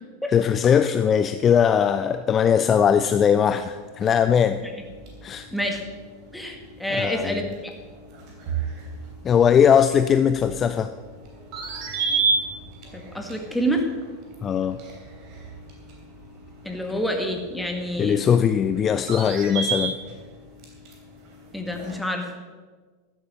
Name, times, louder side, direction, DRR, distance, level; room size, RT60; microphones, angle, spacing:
voice 1, 0.3-4.6 5.2-5.5 6.9-7.5 9.2-10.9 14.4-14.8 18.0-19.9, left 8 dB, 30° left, 11 dB, 0.5 m, -20 dB
sound 1, 3.3-22.0, right 4 dB, 45° right, 3.1 m, -34 dB
voice 2, 6.3-7.7 12.9-13.9 16.7-18.2 21.5-22.3, equal, 5° left, 2 dB, 1.9 m, -27 dB
13.5 x 7.9 x 6.4 m, 1.4 s
figure-of-eight pair, 85°, 0 cm